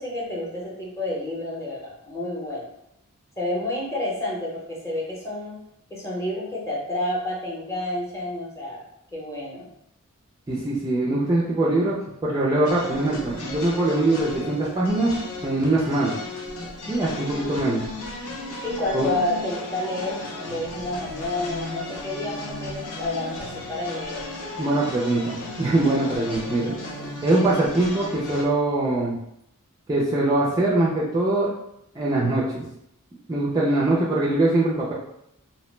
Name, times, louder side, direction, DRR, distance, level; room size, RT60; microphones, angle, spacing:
voice 1, 0.0-2.7 3.4-5.6 5.9-8.8 9.1-9.7 18.6-24.2 26.6-27.1 33.7-33.9, left 1 dB, 15° left, -5 dB, 0.7 m, -30 dB
voice 2, 10.5-12.0 12.2-15.1 15.4-16.1 16.9-17.8 18.9-19.1 24.6-26.7 27.2-29.2 29.9-31.5 32.0-32.7 33.3-34.9, right 2 dB, 15° right, -6 dB, 0.3 m, -22 dB
sound 1, 12.6-28.4, left 2 dB, 85° left, 0.6 m, -35 dB
2.7 x 2.0 x 3.1 m, 0.78 s
head